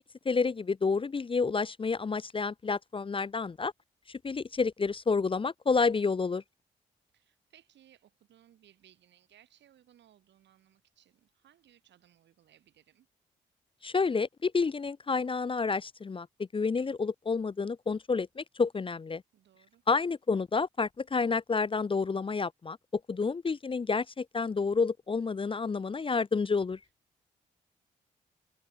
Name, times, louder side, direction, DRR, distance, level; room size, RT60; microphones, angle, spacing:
voice 1, 0.0-3.7 4.1-6.4 13.8-16.3 16.5-19.2 19.9-26.8, left 4 dB, 30° left, 0.5 m, -29 dB
voice 2, 7.1-13.1 19.3-19.8, right 11 dB, 75° right, 7.6 m, -63 dB
supercardioid pair, 45°, 18 cm